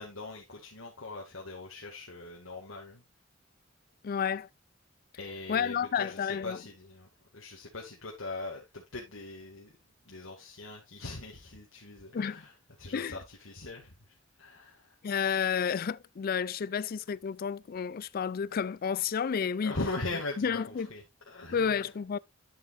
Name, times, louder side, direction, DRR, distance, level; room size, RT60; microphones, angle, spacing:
voice 1, 0.0-3.0 5.2-9.7 10.1-12.5 12.8-15.0 19.6-21.8, left 2 dB, 80° left, 2.1 m, -41 dB
voice 2, 4.0-4.5 5.5-6.6 12.1-12.5 12.9-13.2 15.0-19.7 20.4-20.9 21.5-22.2, left 7 dB, 45° left, 0.4 m, -31 dB
10.5 x 7.3 x 2.5 m
head